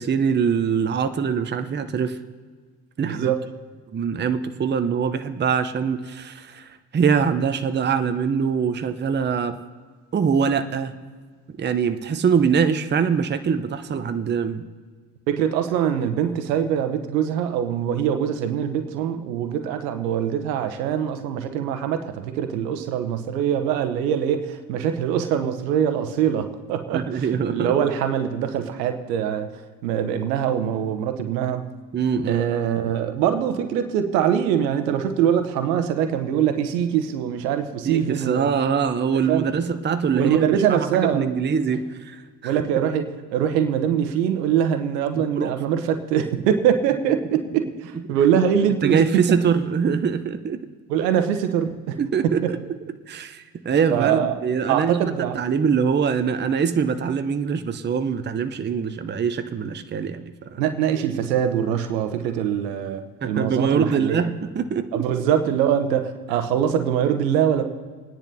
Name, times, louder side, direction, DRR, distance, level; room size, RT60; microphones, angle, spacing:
voice 1, 0.0-2.2 3.0-3.3 3.9-9.6 10.1-10.9 11.6-14.6 26.9-27.7 31.9-32.4 37.9-42.6 45.3-45.5 48.8-50.6 52.0-52.6 53.1-60.6 63.2-65.1, right 6 dB, 20° right, 9 dB, 0.7 m, -23 dB
voice 2, 3.0-3.4 15.3-31.6 32.3-38.5 39.3-39.5 40.1-41.3 42.4-49.2 50.9-52.0 52.4-52.5 53.9-54.3 54.7-55.4 60.6-64.3 64.9-67.6, right 9 dB, 75° right, 8 dB, 1.0 m, -23 dB
28.5 x 10.0 x 2.7 m, 1.5 s
hypercardioid pair, 55°, 49 cm